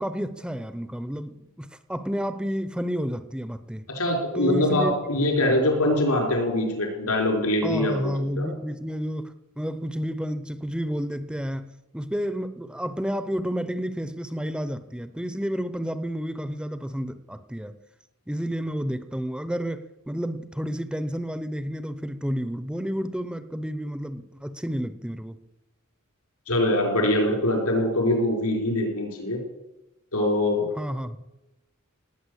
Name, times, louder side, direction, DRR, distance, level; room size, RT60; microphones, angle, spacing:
voice 1, 0.0-3.9 4.3-5.2 7.6-11.6 11.9-17.8 18.3-25.4 30.8-31.2, equal, 5° right, 12 dB, 0.7 m, -30 dB
voice 2, 3.9-8.5 26.5-29.4 30.1-30.7, left 1 dB, 80° left, 2 dB, 5.2 m, -23 dB
18.0 x 9.1 x 8.1 m, 0.97 s
head